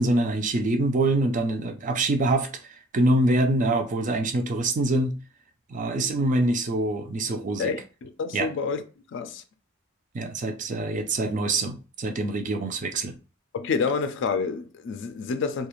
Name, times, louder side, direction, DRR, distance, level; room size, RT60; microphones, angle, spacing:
voice 1, 0.0-2.5 2.9-5.1 5.7-7.7 8.3-8.5 10.1-13.1, right 2 dB, 40° right, 0.4 m, -24 dB
voice 2, 7.6-8.8 9.1-9.4 13.5-15.7, left 5 dB, 60° left, 0.4 m, -28 dB
2.4 x 2.3 x 3.0 m
head